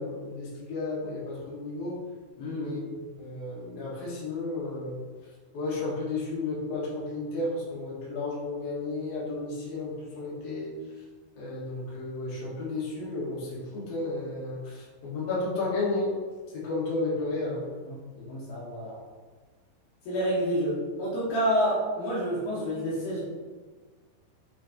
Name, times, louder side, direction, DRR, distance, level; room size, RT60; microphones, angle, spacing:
voice 1, 0.0-2.0 2.5-2.8 3.2-5.0 5.5-10.7 11.4-16.1 16.6-17.6, left 2 dB, 50° left, -7 dB, 2.0 m, -32 dB
voice 2, 2.4-2.8 17.9-19.0 20.1-23.2, equal, 65° left, -6 dB, 2.9 m, -29 dB
6.6 x 5.6 x 2.9 m, 1.4 s
omnidirectional pair, 5.3 m